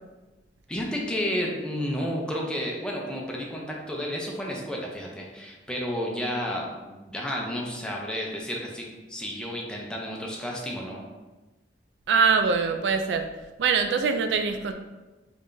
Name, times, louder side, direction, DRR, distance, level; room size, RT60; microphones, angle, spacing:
voice 1, 0.7-11.0, equal, 5° left, -2 dB, 0.5 m, -31 dB
voice 2, 12.1-13.3 13.6-14.7, right 5 dB, 80° right, 7 dB, 0.3 m, -23 dB
3.3 x 2.6 x 3.7 m, 1.2 s
head